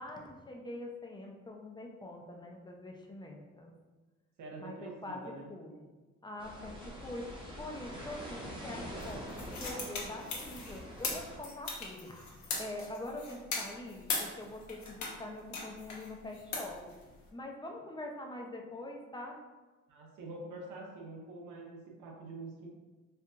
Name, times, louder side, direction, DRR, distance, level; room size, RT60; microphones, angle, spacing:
voice 1, 0.0-3.7 4.6-5.8 6.2-7.3 7.6-16.8 17.3-19.4, left 1 dB, 15° left, 1 dB, 0.6 m, -44 dB
voice 2, 4.4-5.5 8.8-9.0 19.9-22.7, right 2 dB, 90° right, -1 dB, 0.9 m, -46 dB
sound 1, 6.4-11.4, equal, 15° right, 0.9 m, -45 dB
sound 2, 9.0-15.2 15.5-17.3, left 3 dB, 70° left, 0.9 m, -39 dB
4.5 x 2.5 x 2.4 m, 1.2 s
cardioid pair, 90°, 30 cm